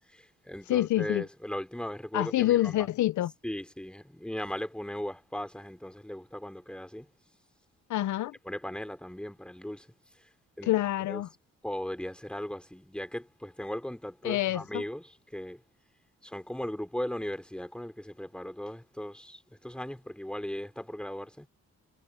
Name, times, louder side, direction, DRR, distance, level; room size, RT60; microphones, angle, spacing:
voice 1, 0.1-2.9 3.4-7.1 8.4-9.9 10.6-10.7 11.1-11.2 11.6-15.6 16.2-21.5, left 1 dB, 5° left, 3.0 m, -37 dB
voice 2, 0.7-1.3 2.1-3.3 7.9-8.3 10.6-11.3 14.2-14.8, left 14 dB, 85° left, 0.6 m, -27 dB
wide cardioid pair, 140°, 29 cm